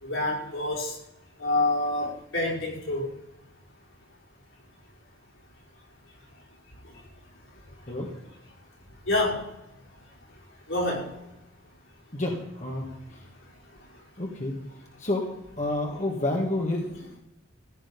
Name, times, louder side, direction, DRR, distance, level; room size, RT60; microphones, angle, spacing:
voice 1, 0.0-1.0 1.4-3.1 9.1-9.5 10.7-11.2, left 2 dB, 85° left, -5 dB, 5.4 m, -27 dB
voice 2, 12.1-13.2 14.2-14.5 15.0-15.3 15.6-17.2, left 1 dB, 35° left, 0 dB, 1.7 m, -29 dB
15.5 x 10.0 x 5.3 m, 0.90 s
head